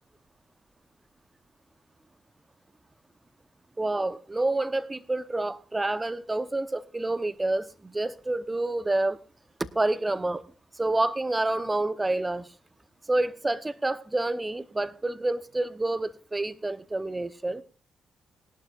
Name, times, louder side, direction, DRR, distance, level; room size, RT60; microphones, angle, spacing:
voice 1, 3.8-9.2 9.7-10.4 10.7-12.5 13.1-17.6, right 2 dB, 20° right, 0.9 m, -28 dB
21.0 x 11.5 x 2.5 m
hypercardioid pair, 45°, 0 cm